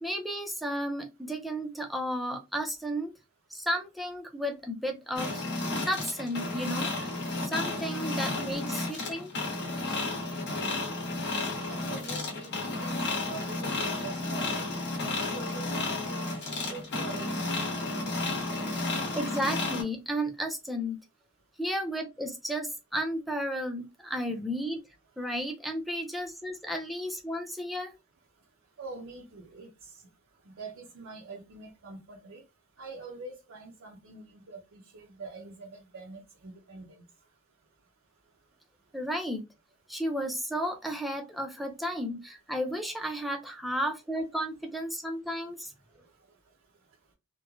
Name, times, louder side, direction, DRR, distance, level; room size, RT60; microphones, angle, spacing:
voice 1, 0.0-3.1 3.5-5.4 5.9-7.1 7.4-9.3 19.1-21.0 21.6-24.8 25.2-27.9 38.9-39.4 39.9-45.7, equal, ahead, 0.5 m, -33 dB
sound 1, 5.2-19.8, left 2 dB, 55° left, 1.0 m, -32 dB
voice 2, 11.7-13.0 13.2-14.6 15.1-16.3 16.7-18.0 28.8-29.7 30.5-32.4 32.8-36.8, right 3 dB, 65° right, 0.6 m, -44 dB
3.0 x 2.1 x 2.4 m
head